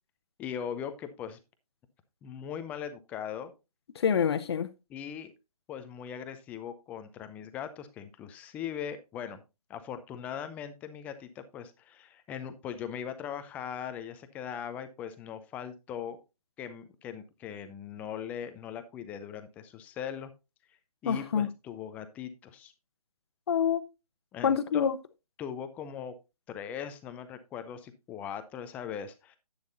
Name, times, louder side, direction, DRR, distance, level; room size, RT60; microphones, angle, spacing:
voice 1, 0.4-1.4 2.2-3.5 4.9-5.3 5.7-9.4 9.7-16.2 16.6-20.3 21.0-22.7 24.3-24.9 25.4-26.1 26.5-29.4, left 8 dB, 10° left, 0.5 m, -40 dB
voice 2, 3.9-4.7 21.1-21.5 23.5-23.8 24.4-25.0, left 7 dB, 45° left, 1.0 m, -26 dB
10.5 x 9.5 x 2.6 m
figure-of-eight pair, 145°, 19 cm